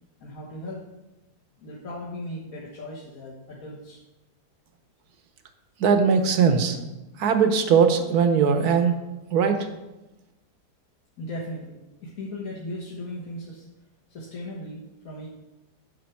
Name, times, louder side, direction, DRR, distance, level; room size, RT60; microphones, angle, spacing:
voice 1, 0.2-0.9 1.6-4.0 11.2-13.6 14.1-15.3, left 1 dB, 60° left, -5 dB, 1.8 m, -37 dB
voice 2, 5.8-6.8 7.2-9.0 9.3-9.7, right 6 dB, 70° right, 7 dB, 1.4 m, -20 dB
10.5 x 6.8 x 4.6 m, 1.0 s
omnidirectional pair, 1.8 m